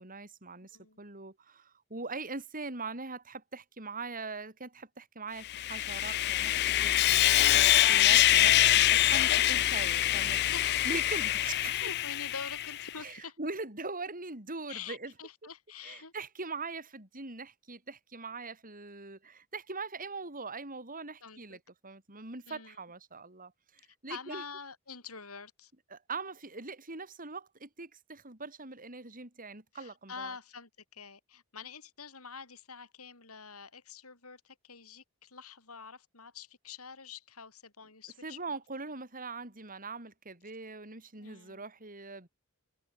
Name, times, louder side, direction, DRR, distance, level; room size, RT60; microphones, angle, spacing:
voice 1, 0.0-10.5 10.8-11.9 13.0-15.1 15.8-24.4 25.9-30.3 38.2-42.3, right 3 dB, 40° right, 5.8 m, -42 dB
Sawing, 5.4-12.9, left 14 dB, 50° left, 0.3 m, -25 dB
voice 2, 10.5-10.8 11.7-13.4 14.7-16.1 21.2-21.6 22.5-22.8 24.1-25.7 29.7-38.6 41.2-41.7, left 5 dB, 85° left, 6.5 m, -46 dB
head